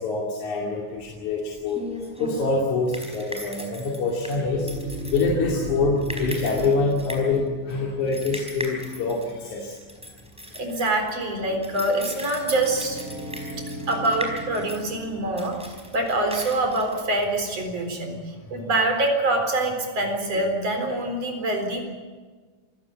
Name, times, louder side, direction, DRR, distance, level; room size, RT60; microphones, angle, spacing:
voice 1, 0.0-1.8 2.2-4.7 5.1-9.7, left 3 dB, 70° left, -1 dB, 3.9 m, -25 dB
sound 1, 1.0-17.7, equal, ahead, 4.4 m, -39 dB
sound 2, 4.4-8.8 11.9-15.2, right 1 dB, 20° right, 4.7 m, -36 dB
voice 2, 10.5-13.0 13.9-18.2 18.5-21.8, right 2 dB, 50° right, 4 dB, 5.1 m, -25 dB
27.0 x 16.5 x 8.4 m, 1.4 s
omnidirectional pair, 3.6 m